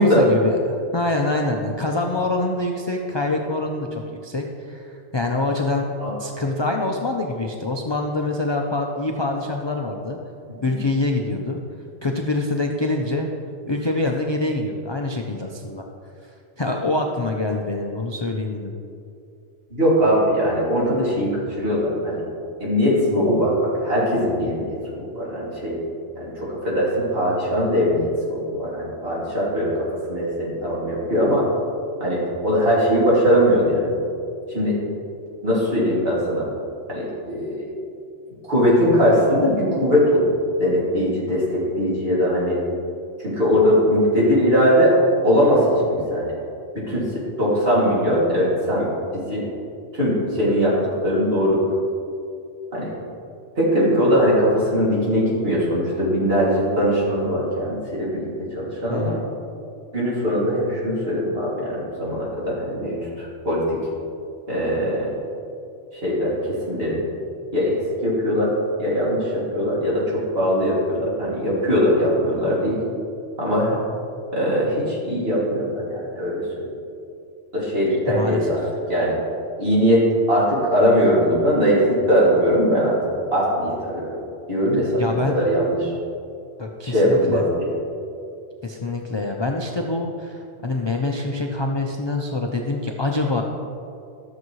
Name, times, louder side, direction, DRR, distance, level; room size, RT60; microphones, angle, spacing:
voice 1, 0.0-5.8 6.2-10.2 10.6-11.6 12.0-13.3 13.7-15.8 16.6-18.7 58.9-59.2 78.1-78.5 85.0-85.4 86.6-87.4 88.6-93.4, left 2 dB, 35° left, 1 dB, 0.4 m, -25 dB
voice 2, 19.7-22.2 22.6-25.8 26.1-31.5 32.0-33.9 34.5-34.8 35.4-36.5 36.9-37.6 38.5-40.3 40.6-42.6 43.2-44.9 45.2-46.3 46.7-49.4 49.9-51.6 52.7-52.9 53.6-59.2 59.9-63.1 63.4-63.8 64.5-65.1 65.9-67.0 67.5-72.8 73.4-73.8 74.3-76.6 77.5-78.6 78.9-79.2 79.6-83.0 83.3-84.2 84.5-85.9 86.8-87.7, equal, 55° right, -7 dB, 2.8 m, -20 dB
13.0 x 7.2 x 3.1 m, 2.5 s
omnidirectional pair, 1.2 m